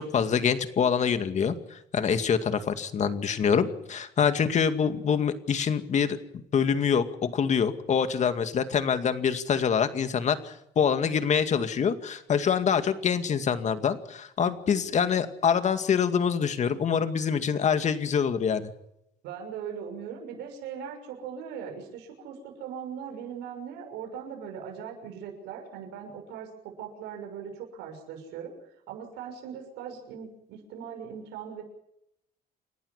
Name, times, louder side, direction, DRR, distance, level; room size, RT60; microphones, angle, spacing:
voice 1, 0.0-18.7, left 7 dB, 45° left, 9 dB, 2.2 m, -25 dB
voice 2, 19.2-28.5 28.9-31.6, right 7 dB, 90° right, 3 dB, 6.5 m, -39 dB
29.0 x 12.0 x 9.8 m, 0.79 s
cardioid pair, 110°, 17 cm